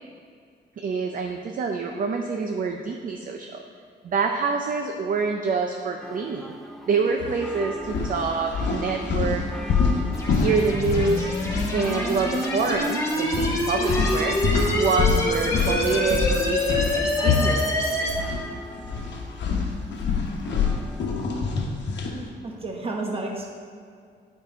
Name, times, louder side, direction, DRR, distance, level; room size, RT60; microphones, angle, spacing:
voice 1, 0.8-3.6 4.0-6.5 6.9-9.4 10.3-11.3 11.7-14.4 14.7-18.1, right 4 dB, 50° right, 3 dB, 0.5 m, -26 dB
sound 1, 6.0-21.3, right 1 dB, ahead, 0.5 m, -41 dB
sound 2, 7.2-7.4 7.8-12.3 12.6-12.8 13.3-18.4 18.7-22.2, left 5 dB, 75° left, 1.1 m, -26 dB
sound 3, 10.1-18.1, left 1 dB, 15° left, 1.1 m, -26 dB
voice 2, 22.1-23.5, right 2 dB, 30° right, 0 dB, 1.2 m, -32 dB
9.0 x 4.6 x 5.2 m, 2.2 s
wide cardioid pair, 140°, 18 cm